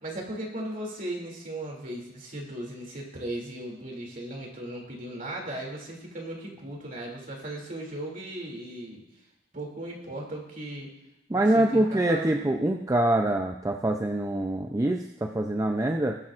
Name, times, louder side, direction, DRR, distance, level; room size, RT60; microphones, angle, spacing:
voice 1, 0.0-9.0 9.5-10.9 11.3-12.5, right 1 dB, 45° right, -1 dB, 2.7 m, -37 dB
voice 2, 11.3-16.2, right 1 dB, 15° right, 3 dB, 0.5 m, -25 dB
21.0 x 8.5 x 2.5 m, 0.91 s
head